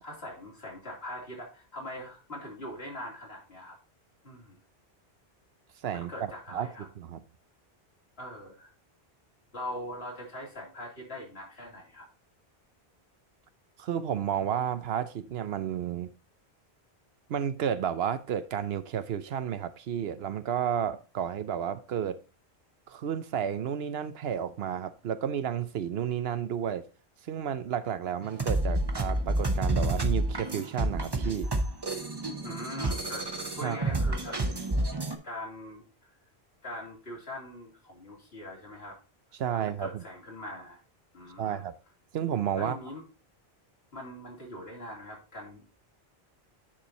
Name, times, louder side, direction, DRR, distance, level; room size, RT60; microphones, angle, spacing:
voice 1, 0.0-3.8 4.2-4.6 5.9-6.9 8.2-8.7 9.5-12.0 32.4-33.3 33.5-34.4 35.2-35.8 36.6-39.0 39.5-40.8 41.1-41.7 42.6-43.0 43.9-45.6, left 1 dB, 70° left, 3.4 m, -42 dB
voice 2, 5.8-6.7 7.0-7.2 13.8-16.1 17.3-22.2 22.9-26.9 27.2-31.5 33.6-33.8 39.3-40.0 41.4-41.7 42.1-42.8, right 9 dB, 70° right, 0.9 m, -32 dB
sound 1, 28.2-35.1, right 1 dB, 25° right, 1.0 m, -29 dB
10.0 x 4.5 x 4.0 m
omnidirectional pair, 1.1 m